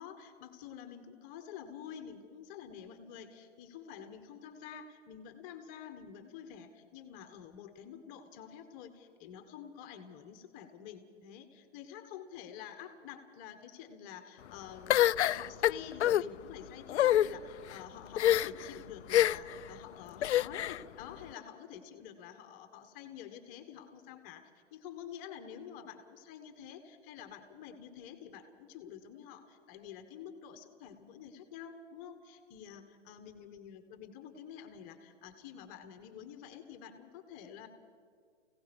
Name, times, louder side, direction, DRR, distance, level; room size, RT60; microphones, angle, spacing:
voice 1, 0.0-37.7, left 8 dB, 25° left, 8 dB, 1.3 m, -49 dB
sound 1, 14.9-16.2 16.9-17.3 18.2-18.7 19.1-19.5 20.2-20.8, left 12 dB, 65° left, 0.5 m, -26 dB
29.5 x 17.0 x 5.3 m, 2.2 s
hypercardioid pair, 145°, 37 cm